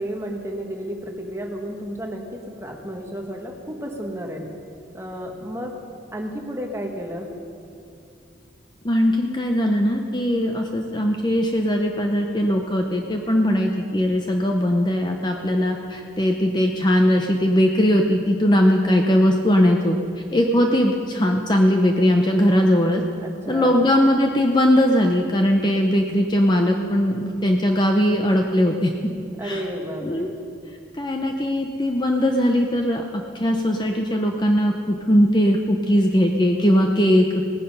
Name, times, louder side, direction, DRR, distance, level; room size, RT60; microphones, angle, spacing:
voice 1, 0.0-4.4 4.9-5.7 6.1-7.3 23.2-23.7 29.4-30.3, equal, 15° right, 1 dB, 1.4 m, -32 dB
voice 2, 8.8-20.0 20.3-23.0 23.5-28.9 29.4-29.6 30.0-30.3 31.0-37.4, equal, 25° left, 3 dB, 0.7 m, -20 dB
18.0 x 9.9 x 5.4 m, 2.5 s
head